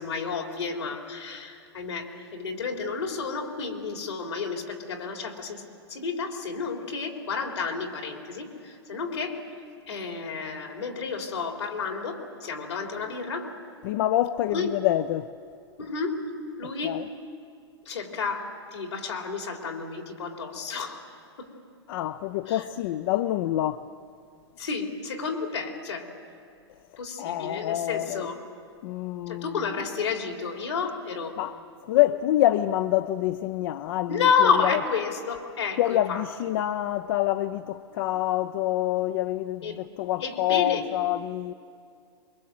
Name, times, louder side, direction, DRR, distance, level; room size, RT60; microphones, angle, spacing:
voice 1, 0.0-5.6 5.9-9.4 9.9-13.5 14.5-14.7 15.8-16.2 16.6-17.0 17.9-21.0 21.4-21.5 22.5-22.6 24.6-26.1 27.0-28.4 29.3-31.4 34.1-36.2 39.6-39.8 40.2-40.8, left 5 dB, 85° left, 3.8 m, -30 dB
voice 2, 13.8-15.3 16.8-17.0 21.9-23.9 27.2-28.3 28.8-29.6 31.4-31.5 31.8-34.8 35.8-41.5, left 14 dB, 55° left, 0.7 m, -26 dB
24.5 x 22.5 x 7.7 m
hypercardioid pair, 110°, 14 cm